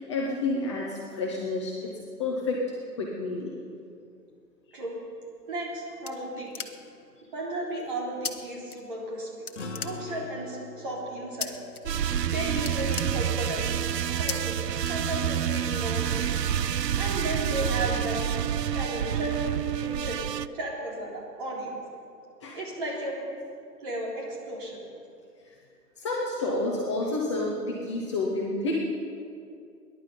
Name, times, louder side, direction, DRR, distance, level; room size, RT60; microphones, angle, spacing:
voice 1, 0.0-2.6 3.0-3.5 22.4-22.6 26.0-28.8, left 2 dB, 20° left, -3 dB, 1.0 m, -29 dB
sound 1, 5.4-7.1 8.2-8.3 8.7-9.2 9.5-10.4 11.4-11.8 12.1-12.3 12.5-13.7 14.3-14.4 14.8-15.5, left 5 dB, 60° left, 1.3 m, -37 dB
voice 2, 5.5-6.7 7.3-9.3 9.8-11.5 12.2-13.9 14.2-14.6 14.9-16.4 16.9-18.4 18.7-21.8 22.5-23.2 23.8-24.8, right 1 dB, 30° right, -3 dB, 3.6 m, -34 dB
sound 2, 9.5-14.2, left 3 dB, 45° left, 1.8 m, -44 dB
sound 3, 11.9-20.5, right 9 dB, 75° right, 0.6 m, -28 dB
20.5 x 11.0 x 5.4 m, 2.4 s
figure-of-eight pair, 140°, 49 cm